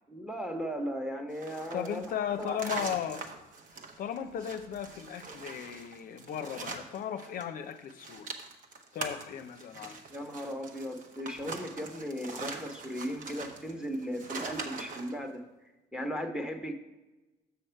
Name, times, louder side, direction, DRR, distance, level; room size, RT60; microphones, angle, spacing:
voice 1, 0.1-2.1 2.4-2.6 10.1-15.4 15.9-16.7, equal, 5° right, 4 dB, 0.9 m, -36 dB
sound 1, 1.3-7.4 7.7-15.2, right 4 dB, 50° right, 1.0 m, -42 dB
voice 2, 1.7-3.3 4.0-8.3 8.9-10.0, left 9 dB, 55° left, 8 dB, 0.5 m, -36 dB
6.9 x 6.4 x 4.5 m, 1.1 s
cardioid pair, 110°, 17 cm